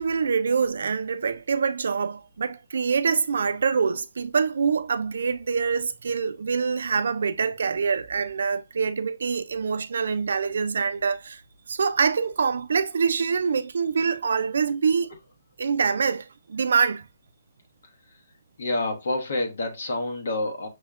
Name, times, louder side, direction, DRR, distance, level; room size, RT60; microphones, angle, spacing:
voice 1, 0.0-11.4 11.7-15.1 15.6-17.1, right 5 dB, 75° right, 0.4 m, -25 dB
voice 2, 18.6-20.7, left 2 dB, 70° left, 0.9 m, -28 dB
6.1 x 2.1 x 2.3 m
hypercardioid pair, 165°, 0 cm